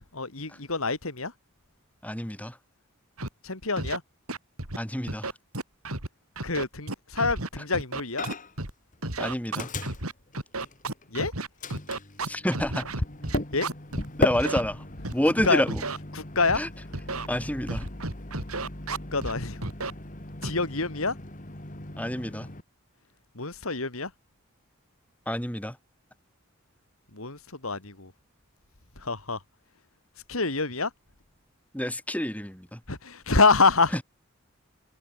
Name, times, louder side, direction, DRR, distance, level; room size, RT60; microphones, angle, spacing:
voice 1, 0.1-1.3 3.4-4.0 6.4-8.2 11.1-11.3 13.5-13.7 15.4-15.6 16.1-16.6 19.1-19.6 20.4-21.1 23.3-24.1 27.1-28.1 29.0-29.4 30.3-30.9 32.9-33.9, left 3 dB, 75° left, 3.2 m, -26 dB
voice 2, 2.0-2.6 4.8-5.3 7.6-7.7 9.2-9.7 12.3-12.9 14.2-14.8 15.1-15.8 16.5-16.7 17.3-17.9 22.0-22.5 25.3-25.8 31.7-32.8 33.9-34.0, equal, 5° left, 5.5 m, -28 dB
Scratching (performance technique), 3.2-3.3 3.8-4.0 4.3-4.8 5.1-6.1 6.4-8.7 9.0-14.1 14.3-14.6 15.0-16.0 16.5-16.6 16.9-17.3 17.7-19.3 19.6-19.9 20.4-20.6, right 2 dB, 90° right, 6.3 m, -32 dB
Microwave oven, 8.2-8.7 8.9-11.2 11.6-22.6, left 2 dB, 35° left, 2.7 m, -36 dB
head